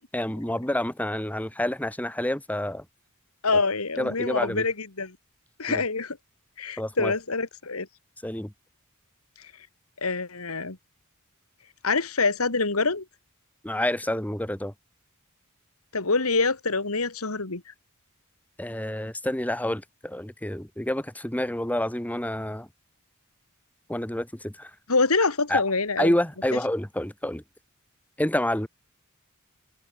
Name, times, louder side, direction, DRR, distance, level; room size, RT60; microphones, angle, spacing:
voice 1, 0.1-2.8 4.0-4.6 5.7-5.8 6.8-7.1 8.2-8.5 13.6-14.7 18.6-22.7 23.9-24.7 25.5-25.6 26.0-27.4 28.2-28.7, left 1 dB, 5° left, 1.8 m, -28 dB
voice 2, 3.4-5.2 5.6-6.2 6.6-7.9 9.4-9.5 10.0-10.8 11.8-13.0 15.9-17.7 24.9-26.1, left 3 dB, 80° left, 2.4 m, -25 dB
head